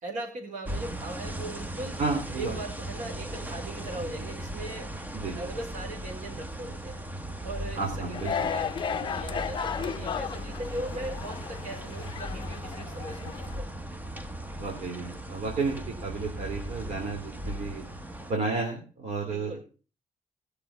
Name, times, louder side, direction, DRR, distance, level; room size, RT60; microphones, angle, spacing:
voice 1, 0.0-2.0 2.4-4.9 5.3-7.0 7.4-13.7 19.3-19.6, right 2 dB, 75° right, 2 dB, 4.4 m, -39 dB
sound 1, 0.7-18.3, right 1 dB, 10° right, 0.8 m, -38 dB
voice 2, 2.0-2.6 5.1-5.4 7.8-8.3 14.6-17.8 18.2-19.6, right 4 dB, 55° right, 1 dB, 2.9 m, -32 dB
sound 2, 8.1-13.6, left 7 dB, 35° left, 0.6 m, -34 dB
18.5 x 6.8 x 5.6 m, 0.36 s
cardioid pair, 160°, 13 cm